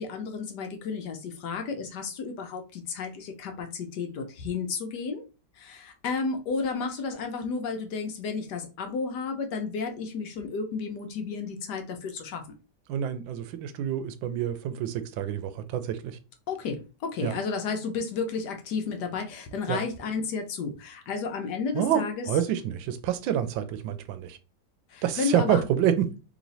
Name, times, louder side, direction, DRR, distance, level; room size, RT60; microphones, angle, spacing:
voice 1, 0.0-5.2 5.6-12.4 16.5-22.3 24.9-25.6, left 5 dB, 70° left, 1.2 m, -32 dB
voice 2, 12.9-16.2 17.2-17.4 19.7-19.8 21.7-24.4 25.0-26.1, right 10 dB, 90° right, 1.3 m, -27 dB
3.2 x 3.1 x 3.9 m
omnidirectional pair, 2.1 m